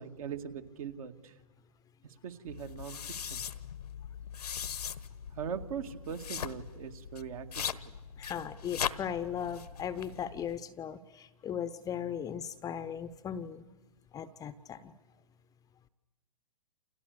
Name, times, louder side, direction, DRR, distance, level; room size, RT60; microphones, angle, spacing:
voice 1, 0.0-1.3 2.0-3.4 5.3-7.7, right 7 dB, 60° right, 6 dB, 2.2 m, -41 dB
sound 1, 2.5-10.6, left 8 dB, 70° left, 1.2 m, -40 dB
voice 2, 8.2-13.6 14.1-14.9, left 8 dB, 15° left, 12 dB, 0.8 m, -38 dB
29.0 x 28.5 x 6.8 m, 1.1 s
figure-of-eight pair, 115°, 21 cm